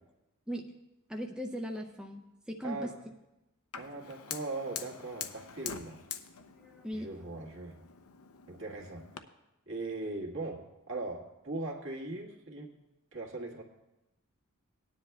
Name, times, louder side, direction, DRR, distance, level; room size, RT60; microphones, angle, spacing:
voice 1, 1.1-2.9 6.5-7.1, equal, 5° right, 1 dB, 0.5 m, -39 dB
voice 2, 2.6-2.9 3.8-6.0 6.9-7.9 8.5-9.1 9.7-12.8 13.1-13.6, right 2 dB, 60° right, -1 dB, 1.7 m, -39 dB
Fire, 3.7-9.2, left 8 dB, 80° left, 0.6 m, -45 dB
18.5 x 10.0 x 2.3 m, 0.96 s
head